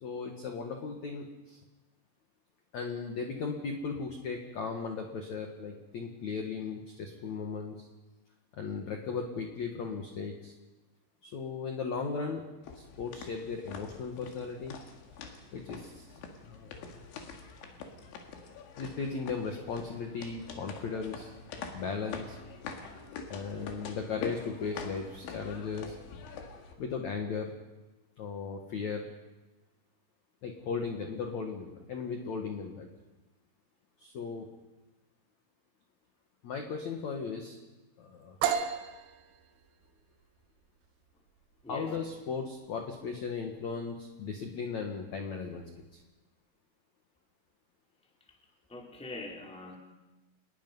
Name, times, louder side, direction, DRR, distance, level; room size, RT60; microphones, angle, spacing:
voice 1, 0.0-1.6 2.7-7.9 8.5-10.5 11.2-12.4 12.7-14.8 15.5-16.1 16.4-17.0 18.8-21.3 21.7-22.4 23.3-25.9 26.8-27.5 28.2-29.1 30.4-32.9 34.0-34.5 36.4-37.6 38.0-38.4 41.7-45.6 45.9-46.0, left 5 dB, 55° left, 3 dB, 2.1 m, -37 dB
sound 1, 12.6-26.7, left 5 dB, 80° left, 4.5 m, -45 dB
sound 2, 38.4-46.0, right 8 dB, 80° right, 3.6 m, -38 dB
voice 2, 48.7-49.7, left 2 dB, ahead, 0 dB, 2.1 m, -43 dB
27.5 x 20.5 x 5.5 m, 1.1 s
omnidirectional pair, 5.3 m